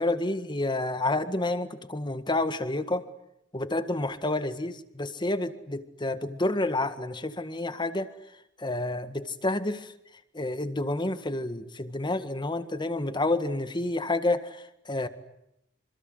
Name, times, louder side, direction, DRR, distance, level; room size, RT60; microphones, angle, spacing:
voice 1, 0.0-3.1 3.5-8.1 8.6-9.9 10.3-15.1, left 2 dB, 25° left, 11 dB, 1.8 m, -29 dB
26.5 x 26.5 x 8.0 m, 0.84 s
head